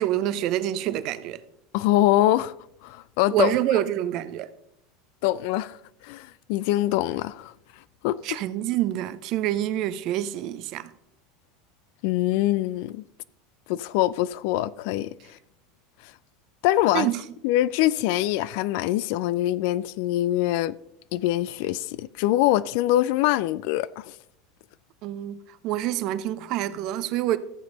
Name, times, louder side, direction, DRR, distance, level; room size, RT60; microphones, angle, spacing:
voice 1, 0.0-1.4 3.3-4.5 8.2-10.9 16.9-17.2 25.0-27.4, right 13 dB, 50° right, 0.6 m, -26 dB
voice 2, 1.7-2.5 2.8-3.5 5.2-7.5 8.0-8.2 12.0-13.0 13.7-15.4 16.0-16.1 16.6-17.1 17.4-20.8 21.1-24.2, left 15 dB, 60° left, 0.3 m, -24 dB
14.0 x 7.7 x 4.0 m
figure-of-eight pair, 80°, 0 cm